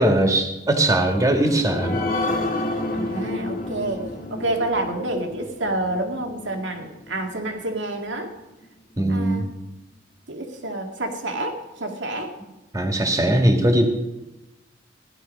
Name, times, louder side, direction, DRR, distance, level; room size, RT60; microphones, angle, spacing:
voice 1, 0.0-2.0 9.0-9.5 12.7-13.9, right 1 dB, 20° right, 3 dB, 2.0 m, -20 dB
sound 1, 1.2-8.2 8.6-8.7 9.1-9.2, left 2 dB, 50° left, 2.0 m, -30 dB
voice 2, 2.9-8.3 9.1-9.5 10.3-12.3, right 2 dB, 90° right, 3 dB, 2.1 m, -28 dB
16.5 x 11.5 x 5.4 m, 1.0 s
head